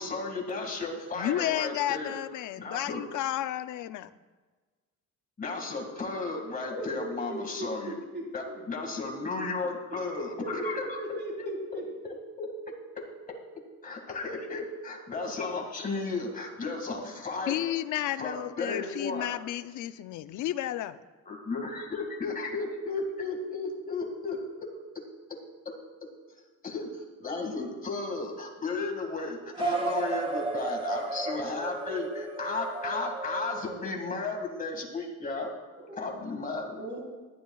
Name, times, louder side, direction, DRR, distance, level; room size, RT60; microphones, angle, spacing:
voice 1, 0.0-2.2 2.6-3.0 5.4-7.9 8.3-12.5 13.8-17.7 18.2-19.3 21.3-24.4 26.6-35.5 36.0-36.8, left 3 dB, 25° left, 1 dB, 2.1 m, -34 dB
voice 2, 1.2-4.1 17.5-21.0, left 13 dB, 75° left, 13 dB, 0.6 m, -32 dB
voice 3, 6.6-8.9 9.3-9.4 10.4-11.8 35.9-36.0 36.8-37.0, right 1 dB, 35° right, -3 dB, 4.2 m, -38 dB
sound 1, 29.5-34.4, right 3 dB, 20° right, 1.3 m, -34 dB
19.0 x 11.5 x 2.4 m, 1.3 s
cardioid pair, 130°, 30 cm